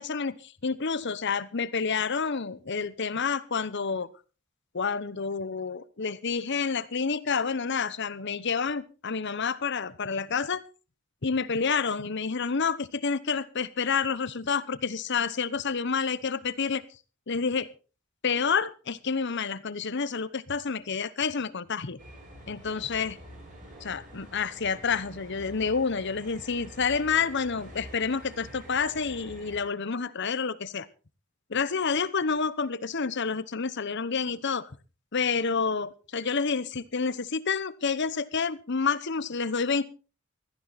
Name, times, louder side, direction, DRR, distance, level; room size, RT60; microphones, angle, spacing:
voice 1, 0.0-4.1 4.7-10.6 11.2-16.8 17.3-17.7 18.2-22.0 22.5-23.2 23.8-30.9 31.5-34.7 35.1-39.8, left 5 dB, 60° left, 16 dB, 1.0 m, -29 dB
sound 1, 22.0-29.6, equal, 40° right, 7.5 m, -47 dB
16.5 x 14.0 x 4.1 m, 0.34 s
head